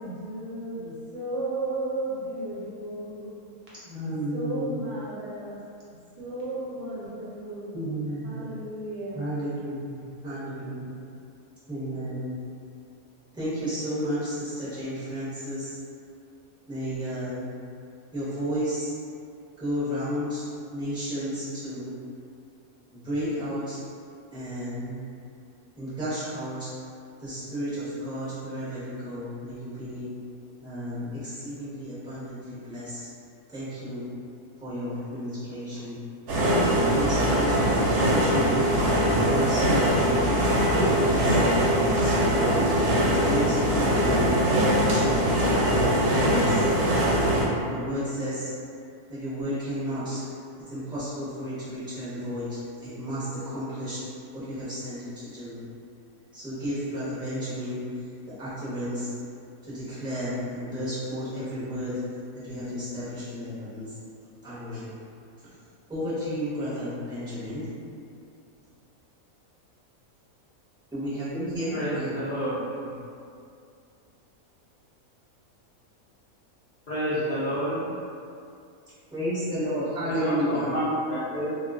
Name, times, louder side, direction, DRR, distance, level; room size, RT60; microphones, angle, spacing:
voice 1, 0.0-3.4 4.3-5.6 6.2-7.8 8.2-9.2, right 2 dB, 65° right, -8 dB, 0.9 m, -34 dB
voice 2, 3.8-4.7 7.7-8.4 9.1-10.9 11.7-12.3 13.3-15.8 16.7-17.5 18.1-18.9 19.6-20.4 20.7-21.9 22.9-23.8 24.3-25.1 25.8-26.7 27.2-30.1 30.6-33.1 33.5-34.0 34.6-36.0 36.7-38.7 39.3-41.4 42.0-42.6 43.0-44.3 44.9-45.4 45.9-46.7 47.7-48.5 49.1-50.3 50.7-54.0 54.3-55.6 56.3-58.1 58.4-59.1 59.6-61.9 62.3-64.0 64.4-64.9 65.9-67.7 70.9-72.1 72.8-72.9 79.1-80.7, equal, 5° right, -13 dB, 0.5 m, -32 dB
sound 1, 36.3-47.5, equal, 90° right, 1.1 m, -22 dB
voice 3, 71.7-72.6 76.9-77.8 80.1-81.5, equal, 80° left, -13 dB, 0.4 m, -28 dB
2.3 x 2.3 x 2.3 m, 2.4 s
omnidirectional pair, 1.5 m